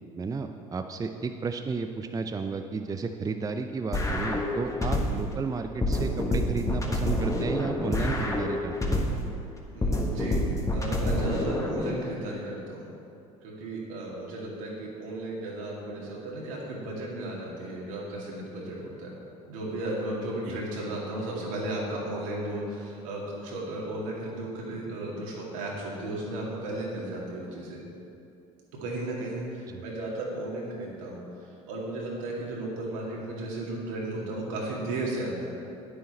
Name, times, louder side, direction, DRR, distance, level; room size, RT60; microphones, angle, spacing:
voice 1, 0.2-9.0 20.5-20.6 29.7-29.8, right 4 dB, 20° right, 7 dB, 0.5 m, -33 dB
sound 1, 3.9-5.3 5.8-9.3 9.8-11.9, left 1 dB, 20° left, 1.5 m, -27 dB
voice 2, 9.7-10.4 10.7-12.9 13.4-19.1 19.5-27.8 28.8-35.6, right 1 dB, 75° right, -3 dB, 2.4 m, -35 dB
9.4 x 9.3 x 4.2 m, 2.7 s
hypercardioid pair, 65°, 17 cm